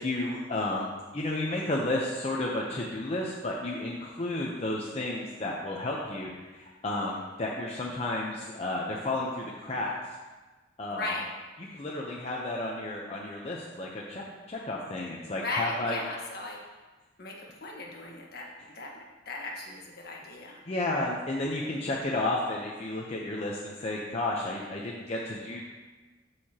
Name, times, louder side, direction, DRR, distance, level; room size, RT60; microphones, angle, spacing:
voice 1, 0.0-9.9 10.8-11.2 11.6-16.0 18.6-18.7 20.7-25.6, left 2 dB, 35° left, -3 dB, 0.8 m, -32 dB
voice 2, 10.9-11.2 15.4-16.6 17.2-18.5 18.7-18.9 19.3-20.6, left 2 dB, 55° left, -1 dB, 1.4 m, -36 dB
14.0 x 4.7 x 2.9 m, 1.2 s
head